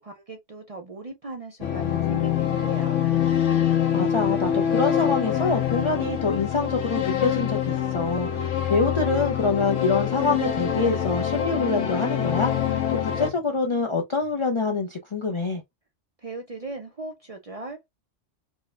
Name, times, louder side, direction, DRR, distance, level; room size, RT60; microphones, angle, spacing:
voice 1, 0.0-3.0 16.2-17.9, right 3 dB, 50° right, 0.4 m, -38 dB
sound 1, 1.6-13.3, left 9 dB, 90° left, 1.1 m, -25 dB
voice 2, 3.9-15.6, left 4 dB, 55° left, 0.3 m, -26 dB
4.6 x 2.1 x 2.3 m
omnidirectional pair, 1.2 m